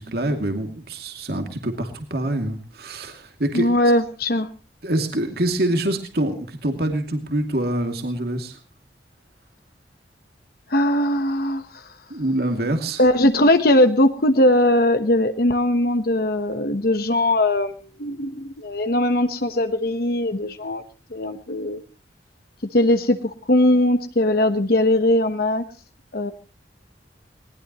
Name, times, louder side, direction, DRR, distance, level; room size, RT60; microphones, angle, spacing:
voice 1, 0.0-3.7 4.8-8.6 12.1-13.0, right 1 dB, 60° right, 5 dB, 2.6 m, -25 dB
voice 2, 3.5-4.5 10.7-11.6 13.0-20.8 21.1-21.8 22.7-25.6 26.1-26.3, left 1 dB, 55° left, 8 dB, 1.2 m, -20 dB
21.0 x 19.5 x 3.1 m, 0.35 s
head